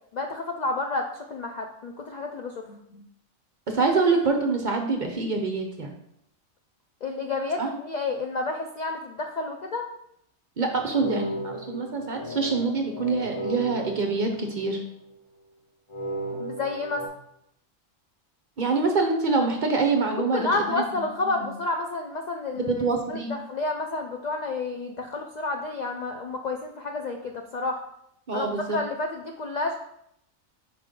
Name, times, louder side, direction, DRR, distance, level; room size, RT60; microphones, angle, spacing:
voice 1, 0.1-2.7 7.0-9.9 16.4-17.0 20.2-22.7 23.1-27.8 28.3-28.5 28.7-29.7, left 3 dB, 85° left, 3 dB, 0.3 m, -30 dB
voice 2, 3.7-5.9 7.6-7.7 10.6-14.8 18.6-20.7 21.2-21.5 22.5-23.3 28.3-28.8, right 4 dB, 50° right, 3 dB, 0.6 m, -25 dB
sound 1, 10.7-15.0 15.9-17.1, right 2 dB, 30° left, 0.7 m, -35 dB
4.9 x 3.6 x 5.2 m, 0.75 s
omnidirectional pair, 1.4 m